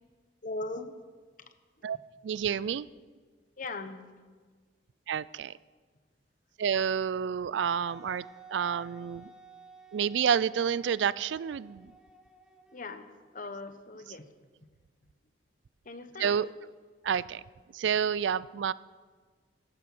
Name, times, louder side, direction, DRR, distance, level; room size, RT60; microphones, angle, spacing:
voice 1, 0.4-0.9 1.4-1.9 3.6-4.1 12.7-14.3 15.8-16.4, left 2 dB, 45° left, 10 dB, 1.0 m, -40 dB
voice 2, 2.2-2.9 5.1-5.6 6.6-8.3 8.5-9.3 9.9-11.9 16.2-16.5 17.0-17.4 17.7-18.7, right 7 dB, 80° right, 19 dB, 0.4 m, -29 dB
Wind instrument woodwind instrument, 7.9-13.4, right 2 dB, 5° right, 1.2 m, -54 dB
14.0 x 13.0 x 6.1 m, 1.5 s
head